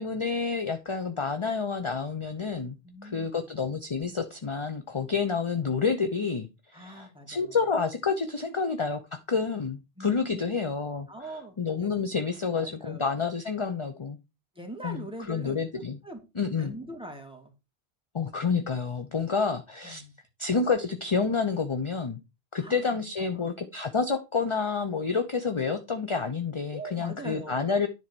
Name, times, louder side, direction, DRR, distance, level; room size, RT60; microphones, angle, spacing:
voice 1, 0.0-2.8 3.0-6.5 6.7-9.0 9.3-11.1 11.6-14.2 14.8-16.0 16.4-16.7 18.1-20.0 20.4-22.2 22.5-27.9, left 5 dB, 30° left, 0.9 m, -29 dB
voice 2, 2.8-3.4 6.7-7.6 10.0-10.5 11.1-11.9 12.5-13.1 14.5-16.2 16.6-17.5 19.8-20.1 22.6-23.4 26.7-27.8, right 1 dB, 5° right, 2.5 m, -42 dB
10.5 x 4.6 x 6.2 m
omnidirectional pair, 1.1 m